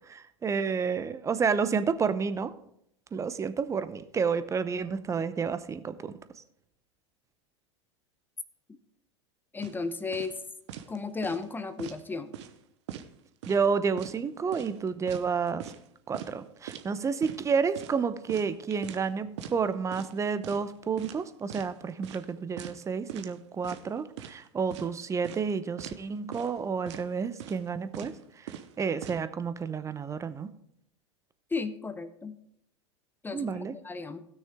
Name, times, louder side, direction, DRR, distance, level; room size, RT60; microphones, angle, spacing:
voice 1, 0.0-2.5 3.1-6.1 13.5-15.7 16.1-30.5 33.3-33.8, right 5 dB, 20° right, 13 dB, 0.7 m, -30 dB
voice 2, 9.5-10.4 10.9-12.3 31.5-32.4 33.2-34.3, left 4 dB, 10° left, 11 dB, 0.9 m, -34 dB
sound 1, 9.6-9.8 10.1-10.4 10.7-11.0 11.2-12.0 12.3-12.6 12.9-13.7 14.0-14.2 14.5-15.9 16.1-16.3 16.7-16.9 17.2-17.4 17.8-19.1 19.4-19.6 19.9-20.2 20.4-20.7 21.0-21.7 22.0-22.3 22.6-22.8 23.1-23.4 23.6-24.4 24.7-24.9 25.2-25.5 25.8-26.0 26.3-26.6 26.9-27.1 27.4-27.7 27.9-28.2 28.5-29.2, right 10 dB, 65° right, 0.9 m, -42 dB
16.0 x 6.4 x 3.6 m, 0.73 s
hypercardioid pair, 95°, 16 cm